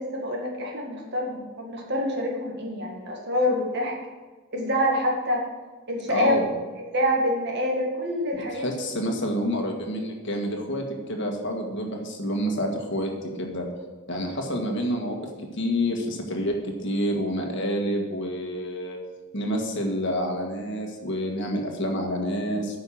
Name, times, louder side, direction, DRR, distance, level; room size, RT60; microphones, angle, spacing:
voice 1, 0.0-3.9 4.5-5.4 5.9-6.4 6.9-8.8, equal, 55° right, 0 dB, 1.9 m, -26 dB
voice 2, 6.1-6.5 8.5-13.1 13.4-13.7 14.1-15.1 15.6-19.0 19.3-22.8, equal, 55° left, 2 dB, 1.6 m, -28 dB
9.1 x 5.6 x 7.3 m, 1.3 s
head